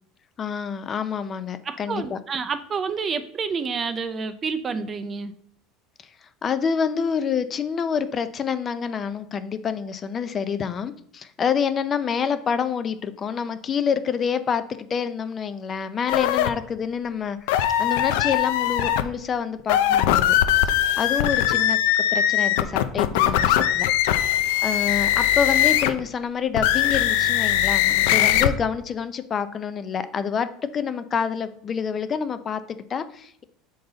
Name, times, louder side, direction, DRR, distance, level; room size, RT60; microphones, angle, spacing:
voice 1, 0.4-2.2 6.4-20.3 21.0-21.8 22.1-23.9 24.6-33.4, left 7 dB, 30° left, 11 dB, 0.5 m, -27 dB
voice 2, 1.7-5.3, right 5 dB, 25° right, 10 dB, 0.5 m, -29 dB
sound 1, 16.1-16.5 17.5-19.0 19.6-26.0 26.5-28.5, left 11 dB, 80° left, 0.5 m, -20 dB
6.8 x 3.9 x 3.9 m, 0.67 s
supercardioid pair, 135°, 0 cm